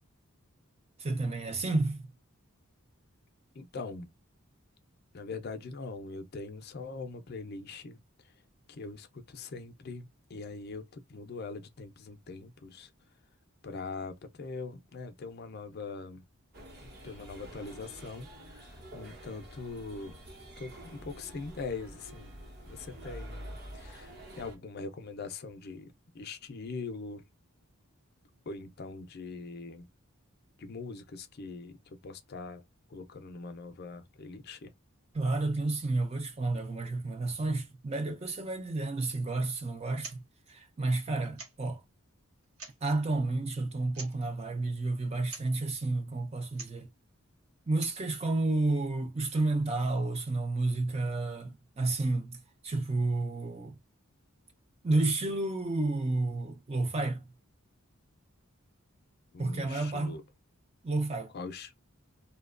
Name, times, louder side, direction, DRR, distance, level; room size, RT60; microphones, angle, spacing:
voice 1, 1.0-2.1 35.1-40.2 40.5-41.8 42.8-46.9 47.7-53.8 54.8-57.3 59.4-60.2 60.8-61.3, right 2 dB, 30° right, 0.5 m, -31 dB
voice 2, 3.6-4.1 5.1-8.0 8.7-12.9 13.6-16.2 16.8-20.1 20.6-22.3 22.7-27.2 28.5-29.9 30.6-32.6 32.9-34.7 59.3-60.2 61.3-61.7, left 3 dB, 45° left, 0.5 m, -42 dB
sound 1, 16.5-24.6, right 1 dB, 45° right, 0.9 m, -47 dB
sound 2, 39.9-40.2 40.5-40.6 41.4-41.7 42.4-42.9 43.9-44.3 45.3-45.5 46.5-46.8 47.6-48.1, right 4 dB, 75° right, 0.9 m, -46 dB
2.8 x 2.2 x 2.3 m
head